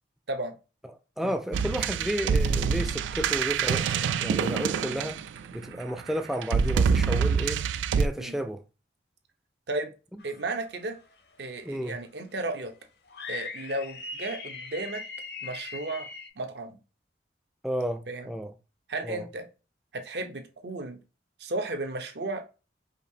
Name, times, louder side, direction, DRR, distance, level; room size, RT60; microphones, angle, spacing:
voice 1, 1.2-5.2 5.5-7.6 7.9-8.6 11.6-12.0 17.6-18.5 19.0-19.2, equal, ahead, 0.3 m, -32 dB
sound 1, 1.5-5.6 6.4-8.1, right 6 dB, 90° right, 0.3 m, -26 dB
sound 2, 10.2-10.7 11.1-11.2 13.1-16.3, left 4 dB, 60° left, 0.6 m, -40 dB
voice 2, 10.2-11.0 11.4-12.7 13.3-15.0 15.4-16.1 16.4-16.8 18.1-18.3 18.9-19.5 19.9-21.0 21.4-22.5, right 2 dB, 65° right, 0.7 m, -34 dB
5.1 x 2.7 x 2.7 m
head